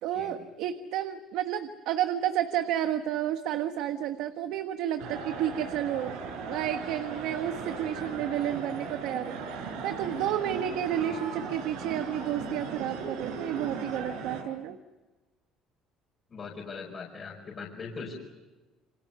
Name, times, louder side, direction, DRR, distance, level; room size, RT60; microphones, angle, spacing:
voice 1, 0.0-6.2 6.5-14.8, right 11 dB, 70° right, 7 dB, 1.4 m, -31 dB
sound 1, 5.0-14.4, right 4 dB, 90° right, 6.2 m, -37 dB
voice 2, 16.3-18.2, left 5 dB, 25° left, -4 dB, 5.0 m, -41 dB
28.5 x 26.0 x 7.0 m, 1.2 s
cardioid pair, 165°, 0 cm